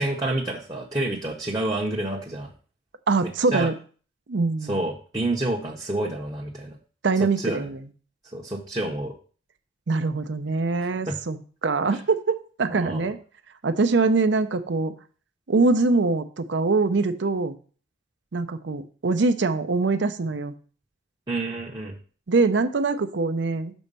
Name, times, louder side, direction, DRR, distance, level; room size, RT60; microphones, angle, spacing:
voice 1, 0.0-2.5 3.2-3.7 4.7-6.8 7.4-7.7 8.3-9.1 11.1-11.2 11.9-12.0 12.7-13.1 21.3-22.0, right 1 dB, 20° right, -2 dB, 0.7 m, -28 dB
voice 2, 3.1-3.7 4.3-4.8 7.0-7.8 9.9-13.2 13.6-14.9 15.5-17.6 18.3-20.5 22.3-23.7, right 3 dB, 65° right, 10 dB, 0.6 m, -23 dB
6.2 x 4.4 x 5.4 m, 0.41 s
head